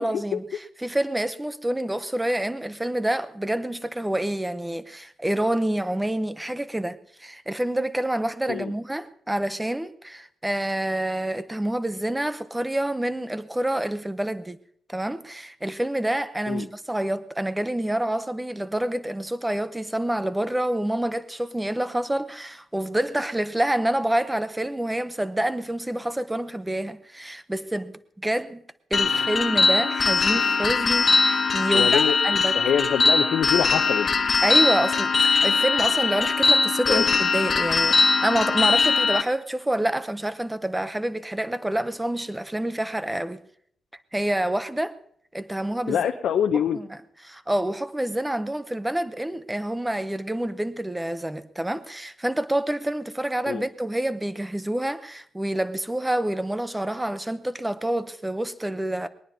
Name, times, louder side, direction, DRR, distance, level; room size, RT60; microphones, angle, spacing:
voice 1, 0.0-14.6 14.9-28.6 28.9-32.7 34.4-43.4 44.1-45.0 45.3-46.1 46.5-59.1, right 1 dB, 10° right, 0.6 m, -27 dB
sound 1, 28.9-39.2, left 4 dB, 35° left, 0.9 m, -21 dB
voice 2, 31.6-32.1 32.5-34.1 36.9-37.0 45.9-46.8 53.5-53.6, left 8 dB, 80° left, 0.7 m, -25 dB
20.5 x 19.5 x 2.8 m
wide cardioid pair, 155°, 0 cm